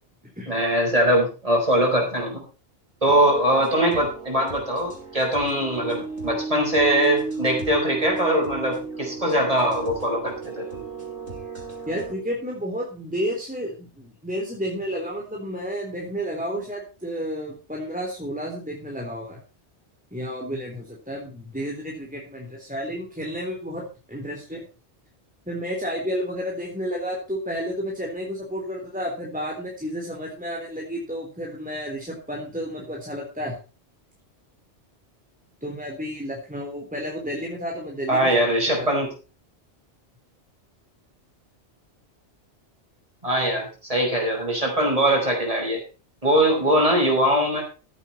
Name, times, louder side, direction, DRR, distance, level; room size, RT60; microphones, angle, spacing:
voice 1, 0.5-2.4 3.0-10.8 38.1-39.1 43.2-45.8 46.2-47.6, right 1 dB, 30° right, 0 dB, 5.7 m, -22 dB
sound 1, 3.1-12.1, right 4 dB, 80° right, 5.2 m, -34 dB
voice 2, 11.9-19.4 20.1-24.6 25.5-33.6 35.6-38.4 38.8-38.9, equal, 5° right, -2 dB, 3.7 m, -31 dB
15.0 x 9.0 x 4.4 m, 0.33 s
omnidirectional pair, 1.2 m